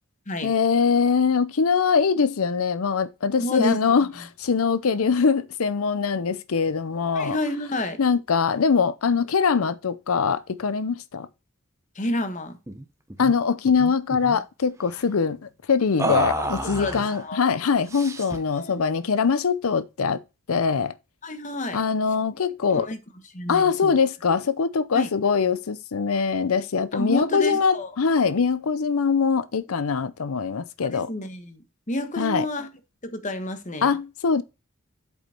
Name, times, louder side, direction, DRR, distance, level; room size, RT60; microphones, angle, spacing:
voice 1, 0.4-7.4 8.0-11.3 13.2-15.4 15.7-20.2 20.5-20.9 21.7-22.9 23.5-31.1 32.2-32.5 33.8-34.4, left 5 dB, 75° left, 0.6 m, -22 dB
voice 2, 3.4-4.0 7.1-8.0 11.9-12.6 16.4-17.4 18.5-18.8 21.2-21.8 22.7-23.0 23.3-23.9 24.9-25.1 26.9-27.9 30.8-32.7 33.0-33.9, left 1 dB, 35° left, 1.4 m, -30 dB
sound 1, 12.7-12.8 13.1-13.3 13.6-14.4 16.0-17.2 17.9-18.5, right 1 dB, 15° right, 1.0 m, -30 dB
8.0 x 5.1 x 4.4 m
head